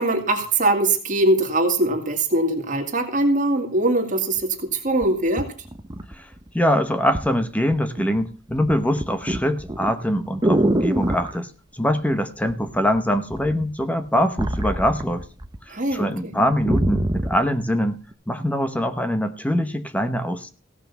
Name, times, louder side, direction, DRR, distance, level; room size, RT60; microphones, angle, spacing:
voice 1, 0.0-5.5 15.7-16.3, right 2 dB, 40° right, 3 dB, 2.1 m, -22 dB
sound 1, 4.4-4.5 5.0-6.5 7.1-7.4 7.7-8.2 8.5-11.4 12.5-13.0 13.3-15.6 15.9-16.0 16.3-17.5 18.1-18.2, right 1 dB, 20° right, 0.8 m, -25 dB
voice 2, 6.5-15.2 15.7-18.0 18.3-20.5, equal, 5° left, 9 dB, 1.0 m, -23 dB
16.0 x 5.9 x 6.9 m, 0.37 s
head